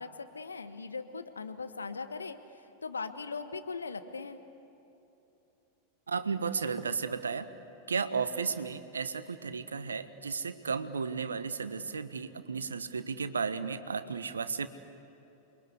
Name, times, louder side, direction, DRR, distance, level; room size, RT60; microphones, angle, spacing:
voice 1, 0.0-4.4, left 4 dB, 80° left, 9 dB, 1.4 m, -40 dB
voice 2, 6.1-7.5 7.9-14.7, right 5 dB, 80° right, 12 dB, 1.1 m, -34 dB
28.5 x 22.0 x 8.2 m, 3.0 s
figure-of-eight pair, 90°, 0 cm